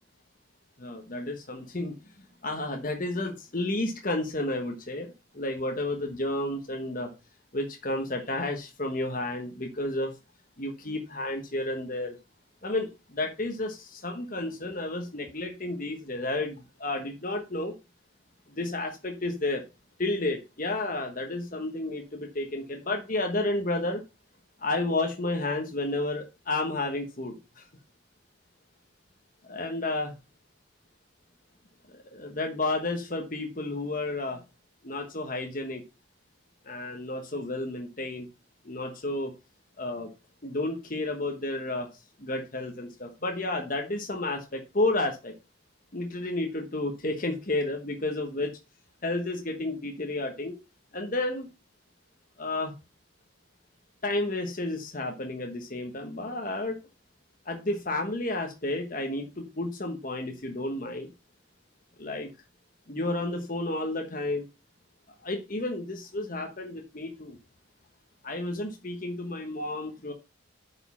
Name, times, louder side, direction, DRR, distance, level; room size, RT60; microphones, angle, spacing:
voice 1, 0.8-2.0 2.4-7.1 7.5-10.1 10.6-12.2 12.6-17.7 18.5-19.6 20.0-24.0 24.6-27.6 29.4-30.1 31.9-34.4 34.8-35.8 36.6-38.3 38.6-39.3 39.8-40.1 40.4-45.3 45.9-48.5 49.0-50.5 50.9-51.5 52.4-52.7 54.0-56.8 57.5-61.1 62.0-62.3 62.9-64.4 65.2-67.4 68.2-70.1, left 2 dB, 40° left, 1.3 m, -31 dB
8.2 x 5.6 x 5.6 m
head